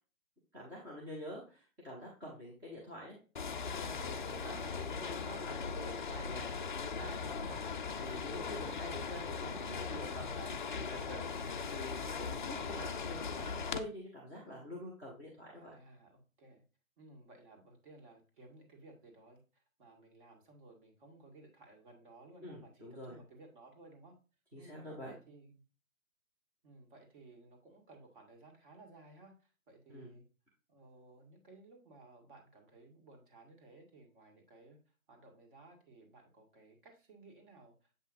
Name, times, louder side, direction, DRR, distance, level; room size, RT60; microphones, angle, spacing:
voice 1, 0.5-3.2 3.7-15.8 22.4-23.2 24.5-25.1 29.9-30.1, left 1 dB, 5° right, -5 dB, 0.7 m, -47 dB
sound 1, 3.4-13.8, left 5 dB, 35° left, 0.5 m, -39 dB
voice 2, 15.5-16.6 17.0-24.2 24.6-24.8 25.0-25.6 26.6-30.2 30.7-37.9, right 2 dB, 35° right, 2 dB, 2.0 m, -58 dB
7.6 x 5.4 x 2.6 m, 0.36 s
figure-of-eight pair, 145°, 41 cm